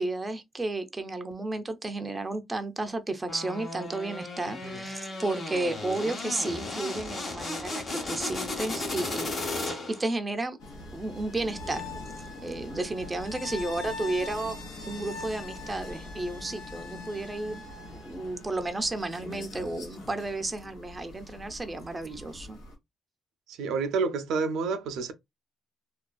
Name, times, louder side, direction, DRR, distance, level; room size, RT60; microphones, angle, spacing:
voice 1, 0.0-10.6 10.9-11.9 12.4-14.6 14.9-22.6, right 2 dB, 20° right, 0.4 m, -33 dB
sound 1, 3.3-10.1, left 2 dB, 45° left, 0.9 m, -35 dB
sound 2, 10.6-22.8, left 2 dB, 90° left, 1.0 m, -42 dB
voice 2, 23.5-25.1, right 4 dB, 85° right, 0.4 m, -29 dB
2.4 x 2.3 x 2.2 m
cardioid pair, 90°, 0 cm